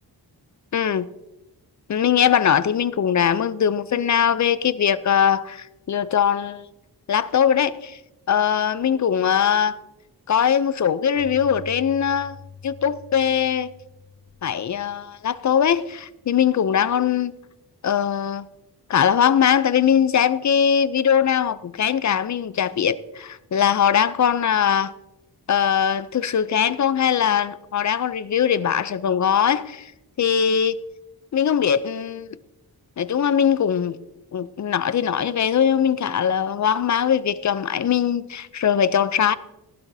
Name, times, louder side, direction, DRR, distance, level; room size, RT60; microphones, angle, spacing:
voice 1, 0.7-1.1 1.9-6.7 7.1-8.0 8.3-9.8 10.3-12.4 12.6-13.7 14.4-17.3 17.8-18.4 18.9-24.9 25.5-29.9 30.2-30.8 31.3-32.4 33.0-34.0 34.3-39.3, left 8 dB, 50° left, 0.4 m, -21 dB
Keyboard (musical), 11.2-15.7, left 6 dB, 75° left, 2.0 m, -45 dB
18.0 x 11.5 x 2.7 m
wide cardioid pair, 155°, 39 cm